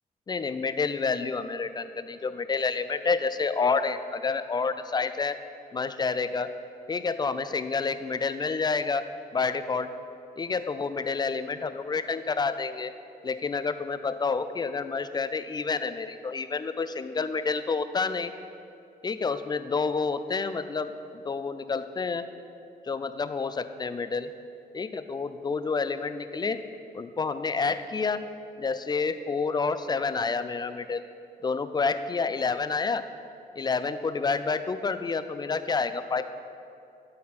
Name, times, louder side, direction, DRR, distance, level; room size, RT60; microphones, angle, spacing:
voice 1, 0.3-5.4 5.7-6.5 6.9-9.0 9.3-9.9 10.4-12.9 13.2-18.3 19.0-22.2 22.8-24.3 24.7-26.6 26.9-28.2 28.6-31.0 31.4-33.0 33.6-36.2, left 4 dB, 25° left, 11 dB, 0.4 m, -29 dB
12.0 x 4.3 x 4.2 m, 2.6 s
cardioid pair, 90°, 17 cm